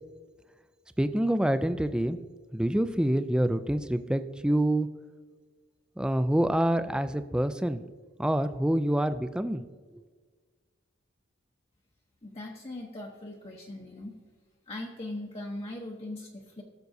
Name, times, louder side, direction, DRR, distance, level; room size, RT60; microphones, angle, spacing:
voice 1, 1.0-2.2 2.5-4.9 6.0-7.8 8.2-9.6 9.9-10.0, right 1 dB, 5° right, 10 dB, 0.3 m, -26 dB
voice 2, 12.2-14.1 14.7-16.6, left 1 dB, 30° left, -1 dB, 0.8 m, -40 dB
16.5 x 6.9 x 2.6 m, 1.5 s
head